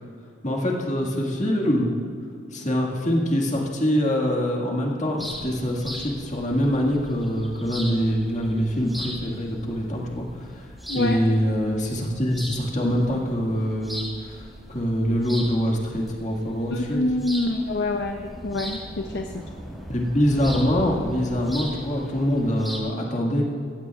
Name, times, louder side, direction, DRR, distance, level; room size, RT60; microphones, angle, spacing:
voice 1, 0.4-1.9 2.5-10.7 10.9-17.0 19.9-23.6, equal, 40° left, -1 dB, 1.8 m, -24 dB
sound 1, 5.2-22.8, equal, ahead, 1.5 m, -39 dB
voice 2, 16.7-19.5, left 2 dB, 60° left, 3 dB, 0.6 m, -26 dB
15.5 x 15.5 x 2.4 m, 2.4 s
head